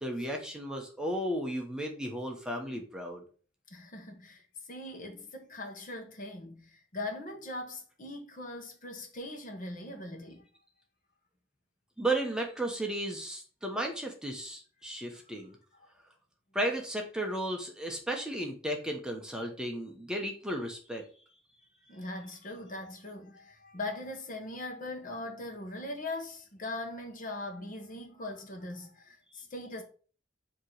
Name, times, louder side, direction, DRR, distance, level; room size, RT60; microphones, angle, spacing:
voice 1, 0.0-3.2 12.0-15.5 16.5-21.1, right 1 dB, 5° right, 0.8 m, -34 dB
voice 2, 3.7-10.5 15.7-15.9 21.9-29.8, left 2 dB, 45° left, 1.2 m, -41 dB
7.3 x 3.0 x 4.6 m
head